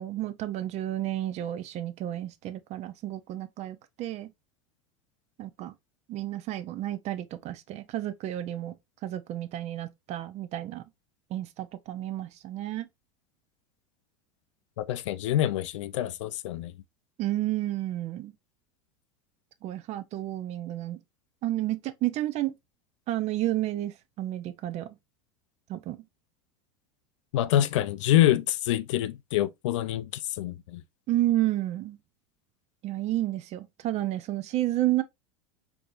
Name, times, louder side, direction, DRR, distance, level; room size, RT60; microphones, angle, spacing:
voice 1, 0.0-4.3 5.4-5.7 6.1-8.7 9.0-10.8 11.3-12.9 17.2-18.3 19.6-21.0 21.4-22.5 23.1-24.9 25.7-26.0 31.1-32.0 32.8-35.0, right 14 dB, 45° right, 0.5 m, -31 dB
voice 2, 14.8-16.7 27.3-30.1 30.4-30.8, left 13 dB, 75° left, 0.4 m, -26 dB
4.5 x 2.7 x 2.5 m
hypercardioid pair, 90°, 16 cm